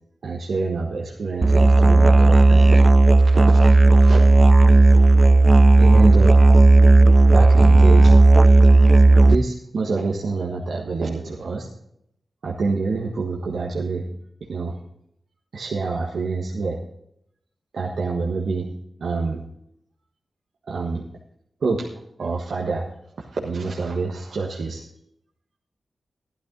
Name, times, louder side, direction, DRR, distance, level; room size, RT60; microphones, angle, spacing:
voice 1, 0.2-2.8 3.3-4.2 5.8-6.4 7.3-8.1 9.2-11.7 12.4-14.0 14.5-14.8 15.5-16.8 17.7-18.7 19.0-19.4 20.7-21.0 21.6-21.9 22.2-22.8 23.2-24.8, right 4 dB, 75° right, -2 dB, 1.5 m, -26 dB
Musical instrument, 1.4-9.4, right 3 dB, 45° right, 0.5 m, -12 dB
12.0 x 12.0 x 4.0 m, 0.75 s
cardioid pair, 40°, 0 cm